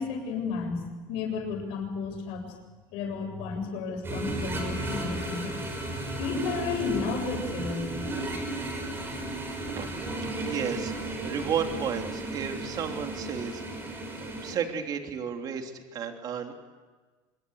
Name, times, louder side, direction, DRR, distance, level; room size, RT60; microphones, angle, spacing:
voice 1, 0.0-2.5 2.9-5.5 6.2-8.2, left 5 dB, 70° left, 3 dB, 7.4 m, -32 dB
sound 1, 4.0-14.5, right 2 dB, 25° right, 7.0 m, -34 dB
voice 2, 10.5-13.6 14.2-16.6, right 7 dB, 40° right, 4 dB, 3.1 m, -33 dB
25.0 x 22.0 x 8.2 m, 1.3 s
supercardioid pair, 130°, 10 cm